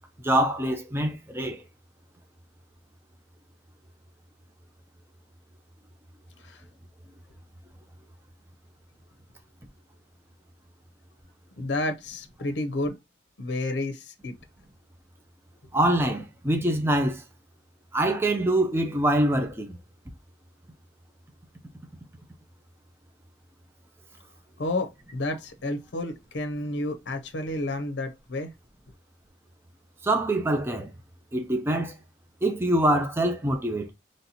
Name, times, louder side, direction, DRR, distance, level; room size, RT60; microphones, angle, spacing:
voice 1, 0.2-1.6 15.7-17.2 17.9-19.8 30.0-30.9 31.3-31.9 32.4-33.9, right 1 dB, 15° right, 0.6 m, -24 dB
voice 2, 11.6-13.0 13.4-14.3 24.6-28.5, left 2 dB, 75° left, 0.6 m, -31 dB
4.2 x 3.2 x 2.7 m
head